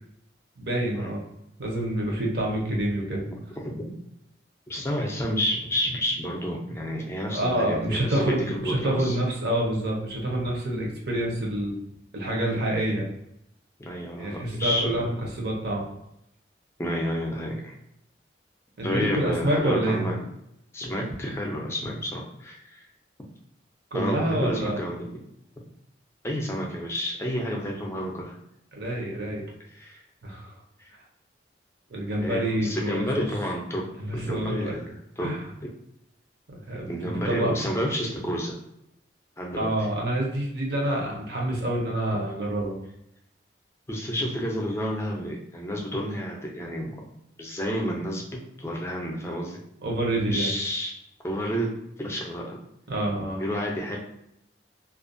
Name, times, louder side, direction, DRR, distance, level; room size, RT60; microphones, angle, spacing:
voice 1, 0.6-1.2 1.6-3.3 7.3-11.7 12.1-13.1 14.2-15.9 18.8-20.0 23.9-24.8 28.7-29.4 30.2-30.6 31.9-33.3 34.0-34.7 35.2-35.4 36.5-37.5 39.5-42.8 49.8-50.5 52.9-53.4, right 1 dB, 65° right, -2 dB, 0.7 m, -27 dB
voice 2, 3.6-3.9 4.7-9.2 13.8-15.1 16.8-17.7 18.8-20.2 20.7-22.8 23.9-25.2 26.2-28.4 29.7-30.0 30.8-30.9 32.2-33.8 34.1-35.3 36.9-38.6 39.4-39.7 43.9-47.0 47.4-48.2 48.6-49.6 50.3-50.9 51.2-51.7 52.0-52.6 53.4-54.0, equal, 15° left, -1 dB, 0.4 m, -30 dB
2.4 x 2.1 x 2.5 m, 0.80 s
head